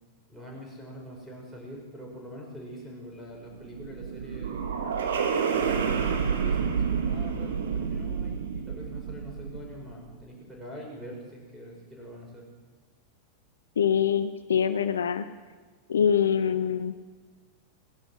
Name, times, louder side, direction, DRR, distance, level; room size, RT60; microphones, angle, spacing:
voice 1, 0.3-4.6 5.5-12.5, equal, 5° right, -2 dB, 5.6 m, -44 dB
sound 1, 3.4-9.9, right 6 dB, 65° right, 1.6 m, -29 dB
voice 2, 13.8-15.2 15.9-16.9, left 8 dB, 65° left, 11 dB, 0.6 m, -24 dB
18.0 x 11.0 x 6.3 m, 1.4 s
figure-of-eight pair, 90°, 0 cm